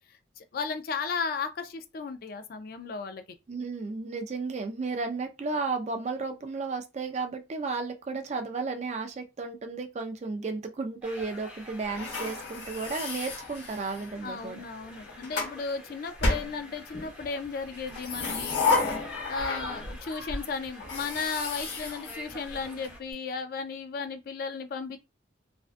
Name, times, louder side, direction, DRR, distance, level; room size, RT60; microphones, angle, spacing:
voice 1, 0.4-3.2 14.2-18.6 19.3-25.0, left 5 dB, 50° left, 0.3 m, -35 dB
voice 2, 3.5-14.6, right 4 dB, 35° right, 0.3 m, -33 dB
sound 1, 11.0-23.0, left 2 dB, 5° right, 0.7 m, -45 dB
sound 2, 11.9-14.2 14.9-15.6 16.2-17.1 17.8-20.0 20.3-20.4 20.8-22.9, left 3 dB, 75° left, 1.0 m, -32 dB
2.5 x 2.2 x 2.4 m
head